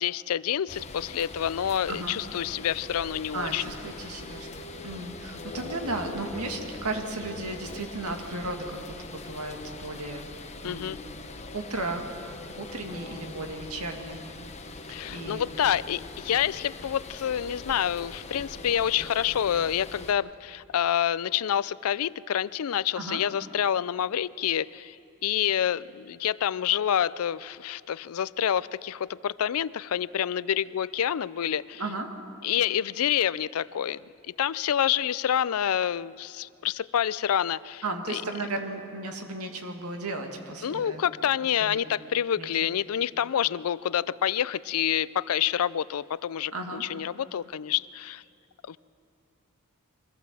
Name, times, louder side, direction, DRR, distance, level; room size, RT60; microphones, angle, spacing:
voice 1, 0.0-3.6 10.6-11.0 14.9-25.0 25.2-31.8 32.4-34.0 34.3-38.2 40.6-48.2 48.7-48.8, left 9 dB, 70° left, 19 dB, 0.4 m, -28 dB
sound 1, 0.7-20.1, left 3 dB, 30° left, 1.1 m, -42 dB
voice 2, 1.9-2.2 3.3-4.5 4.8-10.3 10.6-10.9 11.5-12.0 12.6-14.2 15.1-15.5 23.0-23.2 31.8-32.1 37.8-41.3 41.6-41.8 42.4-42.5 46.5-46.8, right 2 dB, 80° right, 4 dB, 2.1 m, -35 dB
23.5 x 15.5 x 7.5 m, 2.5 s
head